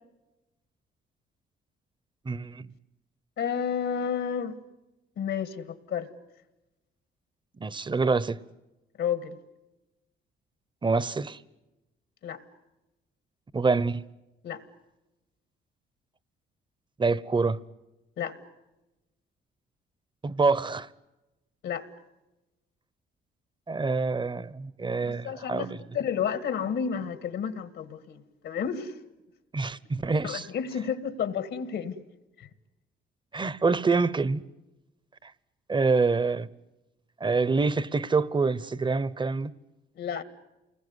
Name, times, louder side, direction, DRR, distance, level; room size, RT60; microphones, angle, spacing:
voice 1, 2.2-2.7 7.6-8.4 10.8-11.4 13.5-14.0 17.0-17.6 20.2-20.9 23.7-25.7 29.5-30.4 33.3-34.4 35.2-35.3 35.7-36.5 37.2-39.5, right 4 dB, 25° right, 0.9 m, -26 dB
voice 2, 3.4-4.5 5.2-6.1 9.0-9.4 12.2-12.4 14.4-14.6 18.2-18.4 21.6-21.9 25.0-29.0 30.2-32.0 32.4-32.5 40.0-40.2, left 7 dB, 75° left, 1.9 m, -31 dB
29.0 x 21.0 x 9.7 m
cardioid pair, 90°, 20 cm